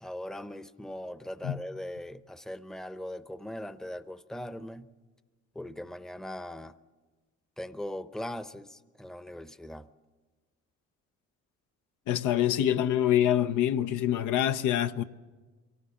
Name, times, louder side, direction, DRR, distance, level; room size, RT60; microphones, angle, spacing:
voice 1, 0.0-4.9 5.5-6.7 7.6-9.9, left 1 dB, ahead, 0.7 m, -40 dB
voice 2, 12.1-15.0, left 11 dB, 85° left, 0.8 m, -25 dB
23.5 x 18.0 x 7.1 m
cardioid pair, 90°, 30 cm